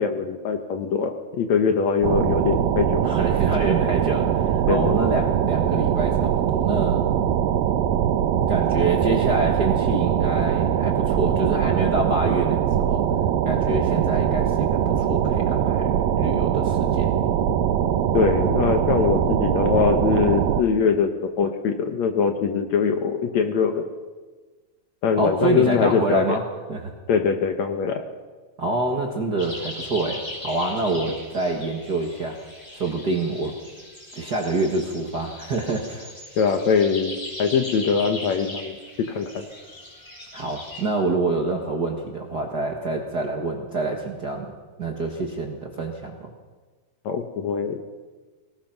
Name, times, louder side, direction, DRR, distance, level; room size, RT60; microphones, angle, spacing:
voice 1, 0.0-3.0 4.7-5.0 18.1-23.8 25.0-26.4 27.1-28.0 36.4-38.8 39.1-39.4 47.1-47.8, left 6 dB, 60° left, 6 dB, 2.2 m, -22 dB
sound 1, 2.0-20.6, right 9 dB, 85° right, 2.7 m, -22 dB
voice 2, 3.0-7.0 8.5-13.1 13.4-17.1 25.2-26.4 26.7-26.9 28.6-32.4 32.7-33.5 34.1-36.1 40.3-44.5 44.8-46.3, right 2 dB, 40° right, 1 dB, 1.6 m, -26 dB
sound 2, 29.4-40.9, left 2 dB, 15° left, 5.9 m, -39 dB
24.5 x 18.5 x 6.0 m, 1.3 s
omnidirectional pair, 4.0 m